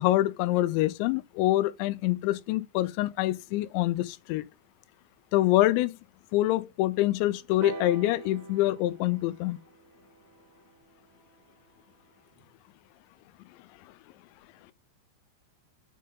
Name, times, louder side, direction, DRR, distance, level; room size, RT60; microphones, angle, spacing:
voice 1, 0.0-4.5 5.3-5.9 6.3-9.6, left 16 dB, 85° left, 2.8 m, -25 dB
sound 1, 7.6-11.4 12.4-12.5, right 4 dB, 85° right, 1.6 m, -44 dB
7.4 x 5.3 x 3.8 m
omnidirectional pair, 5.2 m